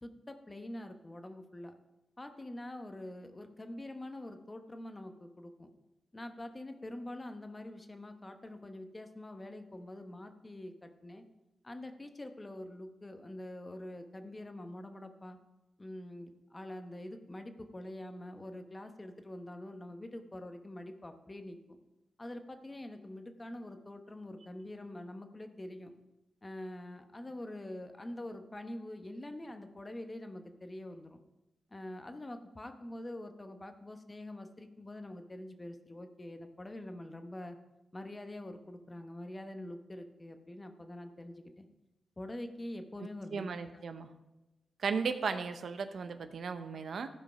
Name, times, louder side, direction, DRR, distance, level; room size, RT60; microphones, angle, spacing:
voice 1, 0.0-1.7 2.2-5.7 6.1-11.2 11.6-15.4 15.8-21.8 22.2-25.9 26.4-31.2 31.7-37.6 37.9-41.7 42.2-43.8, left 1 dB, 25° left, 7 dB, 1.0 m, -45 dB
voice 2, 43.3-44.1 44.8-47.1, right 5 dB, 70° right, 9 dB, 0.8 m, -35 dB
14.5 x 5.0 x 5.6 m, 0.97 s
cardioid pair, 70°, 0 cm